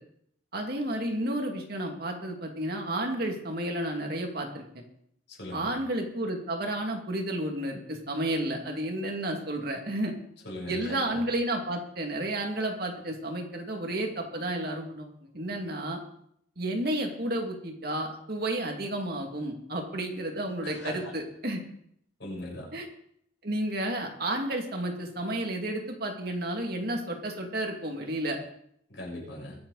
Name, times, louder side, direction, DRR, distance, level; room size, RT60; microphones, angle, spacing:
voice 1, 0.5-4.8 5.5-10.1 10.7-15.1 15.3-16.0 16.6-21.6 22.7-22.9 23.4-28.4, right 1 dB, 50° right, 2 dB, 2.3 m, -31 dB
voice 2, 5.3-5.7 10.4-11.2 20.6-21.1 22.2-22.7 28.9-29.6, left 1 dB, 65° left, -3 dB, 7.1 m, -39 dB
22.5 x 8.6 x 4.1 m, 0.69 s
head